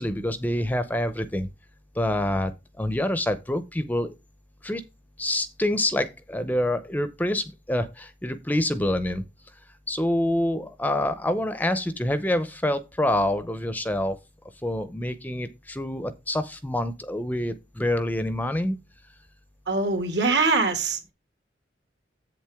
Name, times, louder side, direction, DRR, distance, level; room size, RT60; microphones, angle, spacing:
voice 1, 0.0-1.5 2.0-2.5 2.8-4.1 4.6-4.8 5.2-9.2 9.9-14.2 14.6-18.8, left 1 dB, 10° left, 0.6 m, -26 dB
voice 2, 19.7-21.1, right 3 dB, 70° right, 2.3 m, -23 dB
8.0 x 7.4 x 3.5 m
head